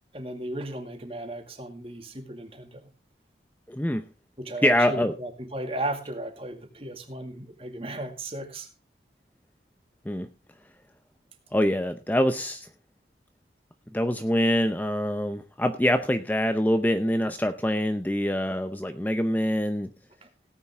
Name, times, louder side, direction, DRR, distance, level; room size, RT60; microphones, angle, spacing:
voice 1, 0.1-2.9 4.4-8.7 20.2-20.3, right 1 dB, 30° right, 6 dB, 2.2 m, -35 dB
voice 2, 3.7-4.0 4.6-5.1 10.1-10.3 11.5-12.7 13.9-19.9, equal, 10° left, 9 dB, 0.6 m, -25 dB
17.5 x 9.2 x 3.6 m, 0.29 s
head